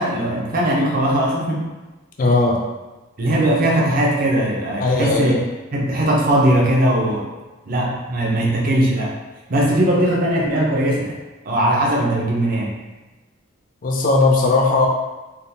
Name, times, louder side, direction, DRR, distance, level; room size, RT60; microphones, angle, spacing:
voice 1, 0.0-1.7 3.2-5.4 5.7-7.3 7.7-9.2 9.5-11.2 11.4-12.7, right 1 dB, 45° right, -2 dB, 0.6 m, -19 dB
voice 2, 2.2-2.6 4.8-5.4 13.8-14.9, left 3 dB, 45° left, 0 dB, 0.4 m, -17 dB
3.5 x 2.3 x 2.7 m, 1.1 s
head